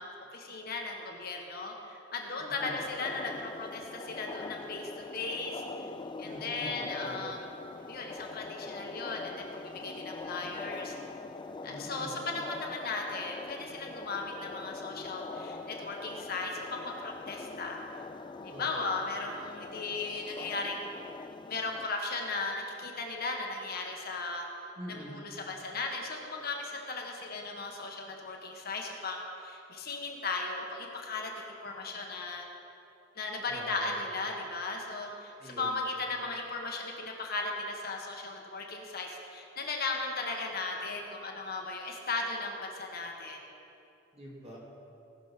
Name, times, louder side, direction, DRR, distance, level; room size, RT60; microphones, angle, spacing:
voice 1, 0.0-5.6 6.2-7.5 7.9-10.9 11.6-17.8 18.4-21.0 21.5-24.5 24.9-32.4 33.1-43.5, left 3 dB, 55° left, 1 dB, 1.4 m, -37 dB
voice 2, 2.4-2.8 6.2-7.2 11.6-12.2 18.5-18.9 24.8-25.2 33.5-33.9 35.4-35.8 44.1-44.6, right 1 dB, 35° right, -4 dB, 2.8 m, -45 dB
sound 1, 2.6-21.9, left 3 dB, 25° left, 0.3 m, -43 dB
18.0 x 6.4 x 5.8 m, 2.7 s
head